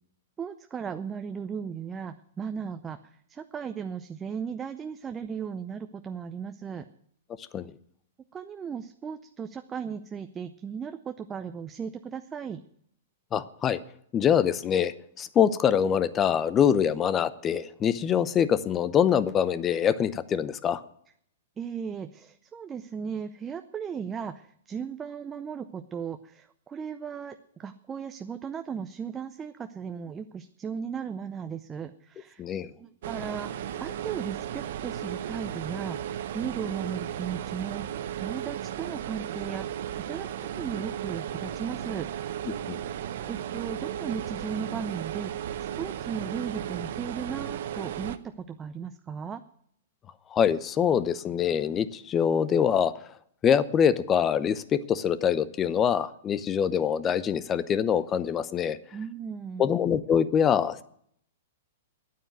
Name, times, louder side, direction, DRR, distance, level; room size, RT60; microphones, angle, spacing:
voice 1, 0.4-6.9 8.3-12.6 21.6-32.4 32.8-42.1 43.3-49.4 58.9-59.7, right 6 dB, 20° right, 9 dB, 0.6 m, -36 dB
voice 2, 13.3-13.8 14.1-20.8 32.4-32.7 42.5-42.8 50.3-52.9 53.4-58.8 59.6-60.8, left 8 dB, 25° left, 16 dB, 0.7 m, -24 dB
sound 1, 33.0-48.2, right 10 dB, 60° right, 0.8 m, -35 dB
9.6 x 9.0 x 9.3 m, 0.69 s
hypercardioid pair, 115°, 0 cm